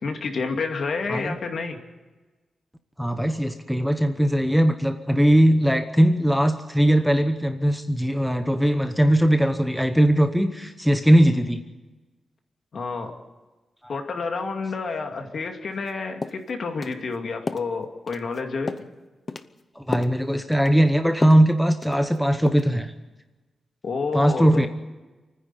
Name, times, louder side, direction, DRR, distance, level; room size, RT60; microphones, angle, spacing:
voice 1, 0.0-1.8 12.7-13.1 13.9-18.8 23.8-24.7, left 4 dB, 55° left, 4 dB, 2.4 m, -29 dB
voice 2, 3.0-11.6 19.8-22.9 24.1-24.7, equal, ahead, 7 dB, 0.9 m, -20 dB
sound 1, 15.7-15.9 16.2-16.4 16.8-17.0 17.5-17.7 18.1-18.4 18.7-18.9 19.3-19.5 19.9-20.2 20.5-20.8 21.2-21.5 21.8-22.2 22.5-22.7, left 4 dB, 35° left, 0.8 m, -31 dB
28.5 x 10.0 x 9.7 m, 1.2 s
wide cardioid pair, 150°, 0 cm